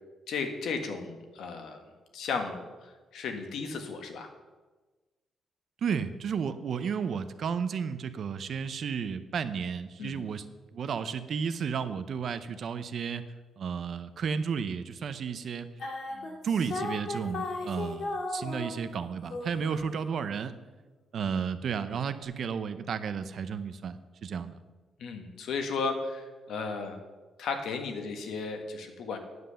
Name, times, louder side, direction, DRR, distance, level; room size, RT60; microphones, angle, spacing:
voice 1, 0.3-1.8 2.1-4.3 10.0-10.2 25.0-27.0 27.4-29.2, left 4 dB, 75° left, 5 dB, 1.5 m, -34 dB
voice 2, 5.8-10.4 10.7-13.2 13.6-15.7 16.1-20.5 21.1-24.6, right 6 dB, 55° right, 11 dB, 0.6 m, -33 dB
sound 1, 15.8-19.0 19.3-20.4, left 2 dB, 55° left, 2.5 m, -36 dB
9.5 x 7.7 x 6.9 m, 1.3 s
wide cardioid pair, 160°, 0 cm